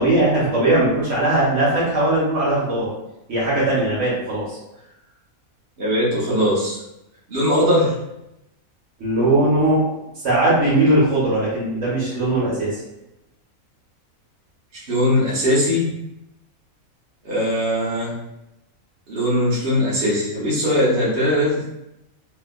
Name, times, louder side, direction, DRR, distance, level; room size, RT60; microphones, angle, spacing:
voice 1, 0.0-2.9 3.3-4.6 9.0-9.8 10.2-12.8, right 1 dB, 60° right, -7 dB, 1.4 m, -19 dB
voice 2, 5.8-6.8 7.3-7.9 14.9-15.9 17.2-18.1 19.1-21.6, equal, 45° right, -8 dB, 1.1 m, -20 dB
3.1 x 2.9 x 2.4 m, 0.87 s
omnidirectional pair, 1.5 m